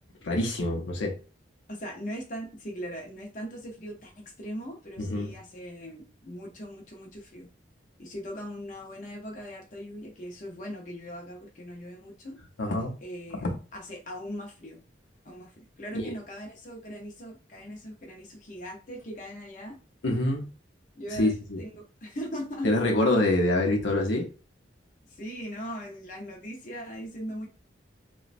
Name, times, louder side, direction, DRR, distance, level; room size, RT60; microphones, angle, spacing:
voice 1, 0.2-1.2 5.0-5.3 12.6-12.9 13.3-13.5 15.9-16.1 20.0-20.4 21.1-21.6 22.6-24.3, left 1 dB, 85° left, 1 dB, 0.7 m, -25 dB
voice 2, 1.7-7.5 8.0-12.4 13.0-13.5 13.7-14.8 15.2-19.8 20.9-21.3 21.6-22.8 25.1-27.5, equal, 45° left, 0 dB, 0.6 m, -40 dB
2.9 x 2.2 x 2.5 m, 0.34 s
head